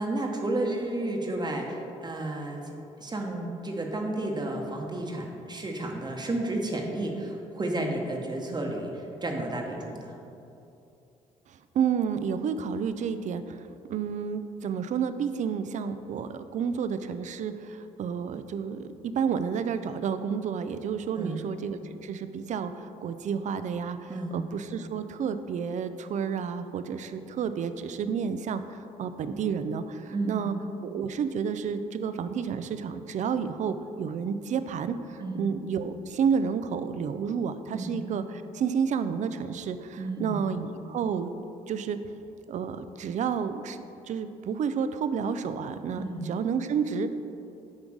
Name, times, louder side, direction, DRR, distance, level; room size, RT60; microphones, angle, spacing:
voice 1, 0.0-10.1 21.2-21.4 24.1-24.4 30.1-30.5 35.2-35.5 37.7-37.9 40.0-40.5 46.0-46.3, right 2 dB, 30° right, 1 dB, 1.1 m, -32 dB
voice 2, 11.5-30.6 30.8-41.3 41.7-42.0 42.5-47.1, right 6 dB, 55° right, 11 dB, 0.5 m, -30 dB
7.2 x 3.8 x 6.2 m, 2.8 s
supercardioid pair, 60°, 15 cm